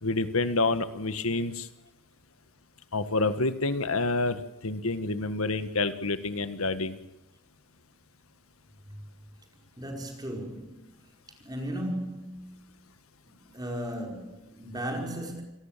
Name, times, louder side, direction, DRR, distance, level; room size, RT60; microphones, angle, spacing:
voice 1, 0.0-1.7 2.9-7.0, left 3 dB, 85° left, 1.7 m, -28 dB
voice 2, 9.8-10.9 11.4-12.6 13.4-15.4, equal, 20° right, 5.1 m, -36 dB
28.0 x 18.5 x 7.5 m
head